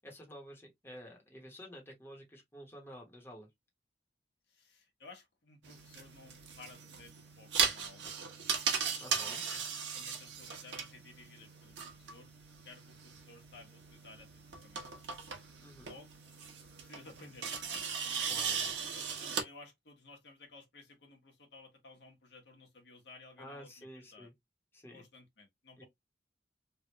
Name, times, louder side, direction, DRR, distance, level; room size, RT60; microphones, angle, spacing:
voice 1, 0.0-3.5 9.0-9.4 15.6-15.9 18.3-18.7 23.4-24.3 24.7-25.0 25.8-25.9, equal, 15° left, 1.1 m, -50 dB
voice 2, 4.5-8.1 8.8-14.8 15.8-16.1 16.8-18.5 18.9-24.3 24.9-25.8, left 3 dB, 75° left, 1.3 m, -56 dB
sound 1, 5.6-19.4, right 6 dB, 80° right, 1.0 m, -38 dB
3.3 x 2.5 x 3.0 m
head